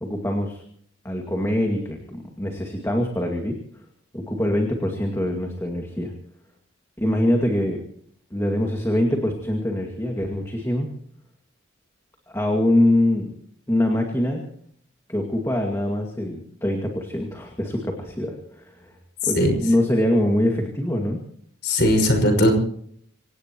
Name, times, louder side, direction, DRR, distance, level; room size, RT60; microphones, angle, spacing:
voice 1, 0.0-0.6 1.0-3.6 4.1-6.1 7.0-7.8 8.3-10.9 12.3-13.3 13.7-14.4 15.1-19.0 19.3-21.2, left 1 dB, 15° left, 1 dB, 2.2 m, -24 dB
voice 2, 21.6-22.5, left 1 dB, 55° left, 4 dB, 5.8 m, -18 dB
26.5 x 17.5 x 3.1 m, 0.63 s
head